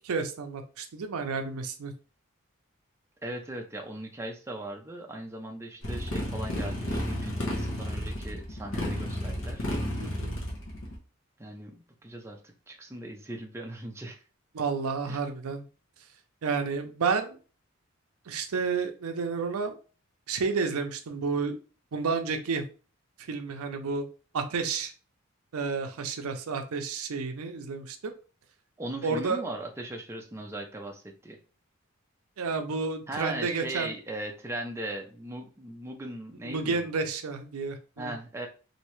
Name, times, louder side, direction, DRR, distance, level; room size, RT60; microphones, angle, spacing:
voice 1, 0.0-1.9 10.0-10.4 14.5-15.6 16.4-17.4 18.3-19.8 20.3-21.5 21.9-22.6 23.2-24.1 24.3-24.9 25.5-28.1 29.0-29.4 32.4-33.9 36.4-38.1, right 4 dB, 85° right, 7 dB, 0.5 m, -31 dB
voice 2, 3.2-9.6 11.4-11.7 12.0-12.4 12.7-14.2 15.1-15.2 28.8-31.4 33.1-36.8 38.0-38.5, right 1 dB, 10° right, 1 dB, 0.4 m, -38 dB
Motorcycle, 5.8-10.9, left 1 dB, 60° left, 0.9 m, -32 dB
3.1 x 2.7 x 3.0 m, 0.37 s
head